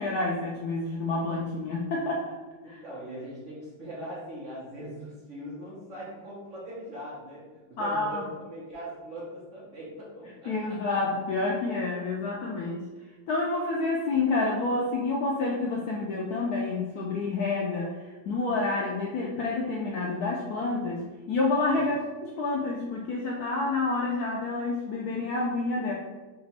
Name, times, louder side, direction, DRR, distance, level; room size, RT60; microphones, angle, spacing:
voice 1, 0.0-2.3 2.7-2.8 7.8-8.3 10.5-12.8 13.3-22.0 22.4-25.9, left 3 dB, 75° left, -2 dB, 0.9 m, -28 dB
voice 2, 2.6-10.8 21.7-21.9, equal, 50° right, -7 dB, 1.0 m, -41 dB
3.4 x 2.9 x 4.0 m, 1.3 s
omnidirectional pair, 2.0 m